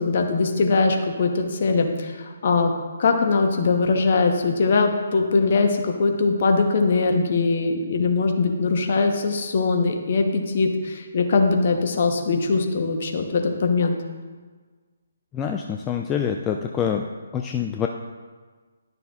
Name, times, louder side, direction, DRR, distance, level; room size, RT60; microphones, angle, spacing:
voice 1, 0.0-2.7 3.0-13.9, left 4 dB, 45° left, 4 dB, 1.0 m, -21 dB
voice 2, 15.3-17.1 17.3-17.9, left 8 dB, 15° left, 3 dB, 0.3 m, -26 dB
11.5 x 6.5 x 2.5 m, 1.4 s
figure-of-eight pair, 140°, 0 cm